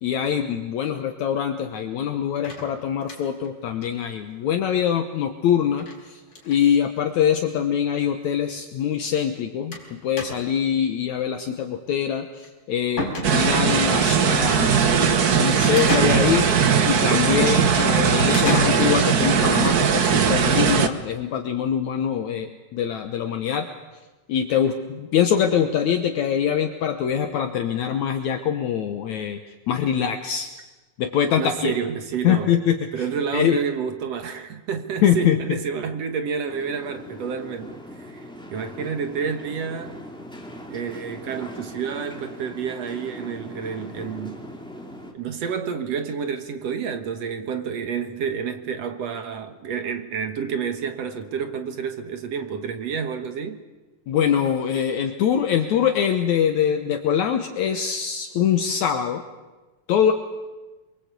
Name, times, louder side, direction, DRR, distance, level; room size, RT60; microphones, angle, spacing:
voice 1, 0.0-23.7 24.3-29.4 29.7-30.5 31.0-31.7 32.2-32.8 33.3-33.6 35.0-35.4 54.1-59.2 59.9-60.1, left 8 dB, 70° left, 2.3 m, -23 dB
sound 1, 2.4-3.5 3.8-3.9 4.2-4.3 4.5-4.6 5.8-6.0 6.3-6.6 7.5-7.6 7.9-8.0 9.7-9.9 10.2-10.6 12.4-12.5 13.0-13.7 15.8-16.6 18.3-19.2, left 1 dB, 35° left, 5.2 m, -31 dB
sound 2, 13.2-20.9, right 7 dB, 85° right, 0.8 m, -19 dB
voice 2, 31.4-32.5 32.9-40.0 40.7-44.4 45.1-53.6, right 6 dB, 60° right, 2.2 m, -29 dB
sound 3, 36.5-45.1, left 1 dB, ahead, 2.2 m, -40 dB
27.5 x 23.0 x 8.2 m
omnidirectional pair, 3.7 m